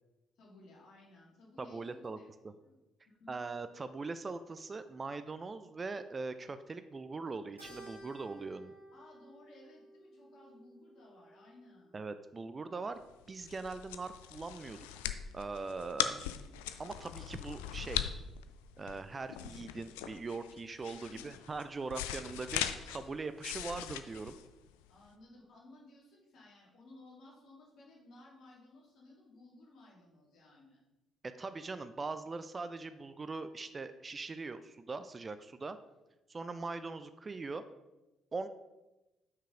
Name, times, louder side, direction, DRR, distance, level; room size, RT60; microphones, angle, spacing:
voice 1, 0.4-2.3 2.6-2.8 3.1-3.4 8.9-12.0 21.0-21.4 24.9-30.8, left 2 dB, 55° left, -3 dB, 2.2 m, -58 dB
voice 2, 1.6-2.5 3.3-8.8 11.9-13.0 13.3-15.0 15.3-16.2 16.8-18.1 18.8-24.4 31.2-35.8 36.3-37.6 38.3-38.5, right 3 dB, 30° right, 12 dB, 0.4 m, -41 dB
Keyboard (musical), 7.6-12.2, right 1 dB, 85° right, 1.5 m, -55 dB
sound 1, 13.1-25.1, left 11 dB, 70° left, 0.3 m, -40 dB
6.0 x 4.7 x 4.9 m, 1.0 s
figure-of-eight pair, 45°, 0 cm